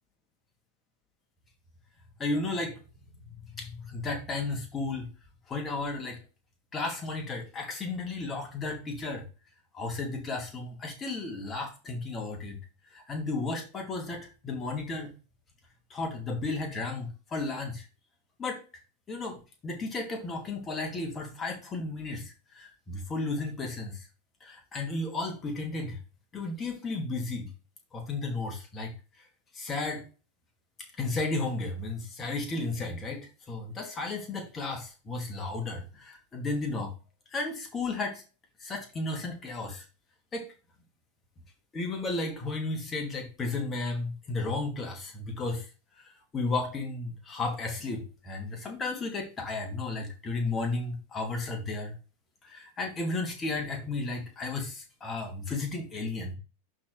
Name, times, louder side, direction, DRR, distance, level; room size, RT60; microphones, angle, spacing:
voice 1, 2.2-2.8 3.5-5.1 5.5-6.2 6.7-9.3 9.7-12.6 12.9-15.1 15.9-17.9 18.4-18.6 19.1-24.0 24.4-26.0 26.3-27.5 27.9-28.9 29.5-30.1 31.0-36.9 37.3-38.2 38.6-39.8 40.3-40.5 41.7-45.7 46.3-51.9 52.4-56.4, left 3 dB, 20° left, 3 dB, 2.2 m, -33 dB
11.0 x 4.0 x 3.3 m, 0.33 s
figure-of-eight pair, 90°, 0 cm